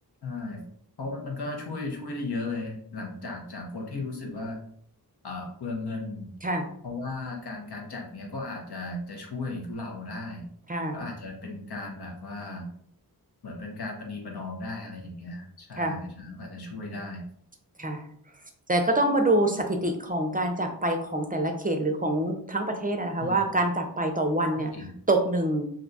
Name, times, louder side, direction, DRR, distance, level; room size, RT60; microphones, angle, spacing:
voice 1, 0.2-0.6 1.0-4.6 5.2-6.3 6.8-10.5 10.9-12.7 13.4-17.3 23.2-23.4 24.5-24.9, left 3 dB, 80° left, 0 dB, 0.9 m, -36 dB
voice 2, 18.7-24.7 25.1-25.7, right 1 dB, 25° right, 4 dB, 0.4 m, -26 dB
2.6 x 2.2 x 3.9 m, 0.64 s
wide cardioid pair, 60°, 38 cm